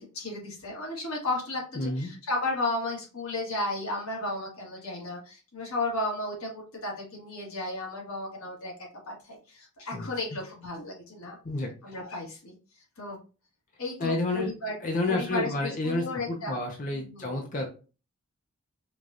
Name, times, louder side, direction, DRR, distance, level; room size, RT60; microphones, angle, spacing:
voice 1, 0.0-11.4 11.8-12.5 13.0-13.2 13.8-14.8 15.1-16.6 16.9-17.3, left 2 dB, 90° left, -1 dB, 1.4 m, -34 dB
voice 2, 1.8-2.1 9.9-10.1 11.4-11.7 14.0-14.5 14.8-17.7, left 2 dB, 35° left, 1 dB, 0.5 m, -30 dB
4.8 x 2.3 x 2.6 m, 0.34 s
head